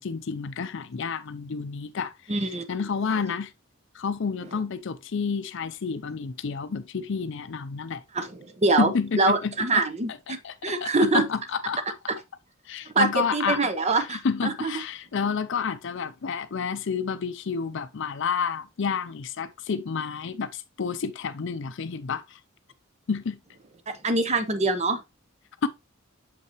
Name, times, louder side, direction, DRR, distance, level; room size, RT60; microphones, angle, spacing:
voice 1, 0.0-2.1 2.7-3.5 3.9-8.0 8.8-9.8 10.3-11.8 12.7-13.6 14.0-22.4 23.1-23.4 25.6-25.7, left 5 dB, 65° left, 0.5 m, -30 dB
voice 2, 2.3-2.6 8.1-8.9 9.2-10.4 10.6-11.2 12.9-14.7 23.9-25.0, right 3 dB, 35° right, 0.8 m, -24 dB
6.9 x 5.5 x 2.9 m
head